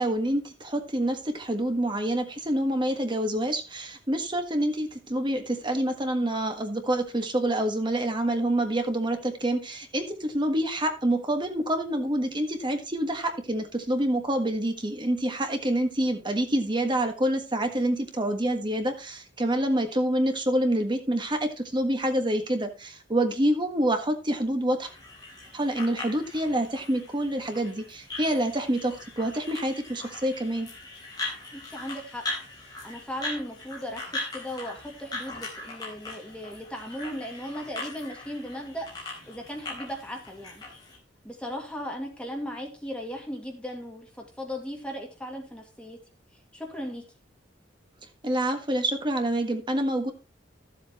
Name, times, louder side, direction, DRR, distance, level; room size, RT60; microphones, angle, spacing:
voice 1, 0.0-24.9 25.5-30.7 48.2-50.1, right 1 dB, 25° right, 6 dB, 1.5 m, -27 dB
sound 1, 24.8-41.0, left 2 dB, 25° left, 3.7 m, -40 dB
voice 2, 31.5-32.3 32.8-38.9 39.3-40.6 41.2-46.0 46.5-47.1, equal, 5° left, 1 dB, 2.2 m, -37 dB
12.5 x 7.8 x 3.0 m, 0.31 s
head